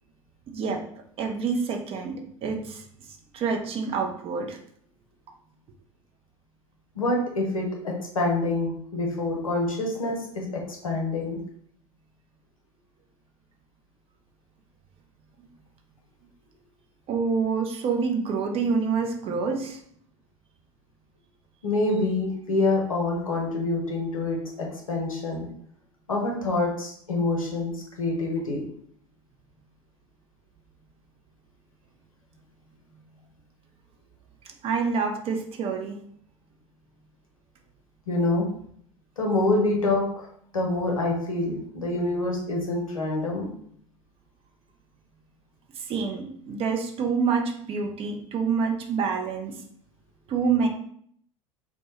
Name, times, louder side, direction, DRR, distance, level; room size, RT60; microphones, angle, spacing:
voice 1, 0.5-0.8 1.2-2.8 3.3-4.6 17.1-19.8 34.6-36.0 45.9-49.5 50.3-50.7, right 5 dB, 35° right, 2 dB, 0.4 m, -27 dB
voice 2, 6.9-11.4 21.6-25.5 26.1-27.7 28.0-28.6 38.1-38.5 39.2-40.3 40.5-43.5, left 2 dB, 90° left, -1 dB, 0.6 m, -26 dB
2.1 x 2.0 x 3.0 m, 0.64 s
figure-of-eight pair, 75°, 17 cm